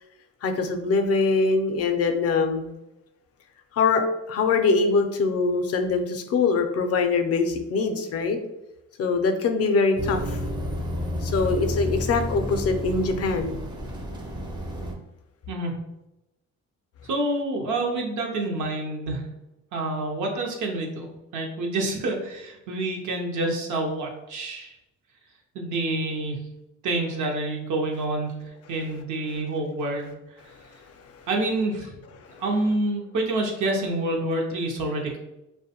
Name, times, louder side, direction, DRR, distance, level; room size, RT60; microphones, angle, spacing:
voice 1, 0.4-2.7 3.7-8.4 9.0-10.4 11.2-13.6 30.5-30.6 32.3-32.4, left 4 dB, 55° left, 6 dB, 0.4 m, -23 dB
sound 1, 10.0-14.9, equal, 15° right, 0.4 m, -30 dB
voice 2, 15.5-15.8 17.0-19.2 19.7-21.1 21.3-24.7 25.5-26.4 26.8-28.4 28.7-30.1 31.3-31.9 32.4-35.2, right 2 dB, 75° right, 1 dB, 0.6 m, -27 dB
2.5 x 2.2 x 2.7 m, 0.91 s
cardioid pair, 90°, 30 cm